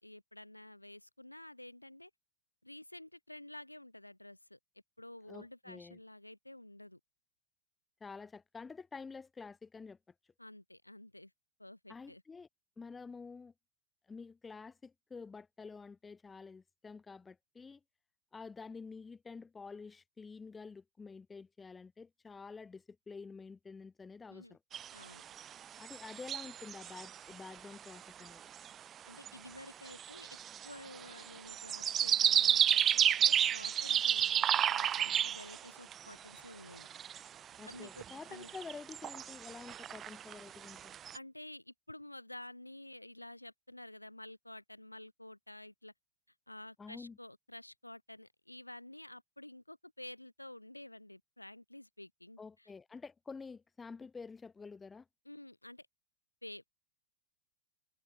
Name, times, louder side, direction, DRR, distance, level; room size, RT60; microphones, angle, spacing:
voice 1, 0.0-2.1 2.6-4.6 5.0-7.0 10.4-11.3 11.6-12.2 24.3-24.6 24.9-25.2 29.1-30.3 30.6-36.9 37.7-38.5 41.1-45.9 46.5-52.7 55.3-55.9 56.4-56.8, left 1 dB, 85° left, 1.9 m, -51 dB
voice 2, 5.3-6.0 8.0-10.0 11.9-12.5 12.8-13.5 14.1-17.8 18.3-24.6 25.8-28.4 37.6-40.9 46.8-47.2 52.4-55.1, left 4 dB, 15° left, 7.3 m, -49 dB
sound 1, 24.7-27.2 27.5-27.6 27.7-28.3 28.5-28.7 29.1-29.3 29.9-36.0 36.4-36.5 36.7-37.3 37.7-38.1 38.4-41.2, right 9 dB, 25° right, 0.6 m, -31 dB
figure-of-eight pair, 90°, 0 cm